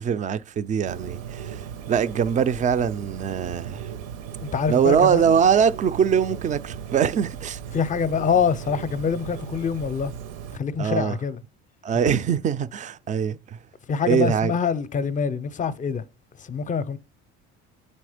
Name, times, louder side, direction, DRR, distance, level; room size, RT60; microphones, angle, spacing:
voice 1, 0.0-1.6 1.9-3.8 4.7-7.6 10.8-11.2 11.8-13.4 14.0-14.5, right 7 dB, 25° right, 0.3 m, -22 dB
Bird, 0.9-10.6, right 8 dB, 85° right, 0.8 m, -37 dB
voice 2, 4.4-5.4 7.7-10.1 10.5-11.4 13.9-16.0 16.4-17.0, left 6 dB, 25° left, 0.5 m, -25 dB
8.3 x 4.3 x 4.9 m
cardioid pair, 125°, 30 cm